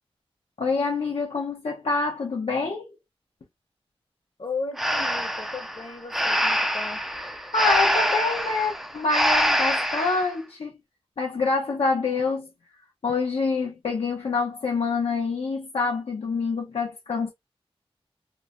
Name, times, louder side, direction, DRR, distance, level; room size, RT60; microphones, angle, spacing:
voice 1, 0.6-2.9 7.5-10.7 11.2-12.5 13.0-17.3, left 4 dB, 75° left, 0.7 m, -26 dB
voice 2, 4.4-7.0, left 4 dB, 55° left, 1.0 m, -35 dB
Breathing, 4.8-10.3, equal, 5° right, 0.4 m, -25 dB
3.0 x 2.1 x 2.4 m
wide cardioid pair, 85°, 10 cm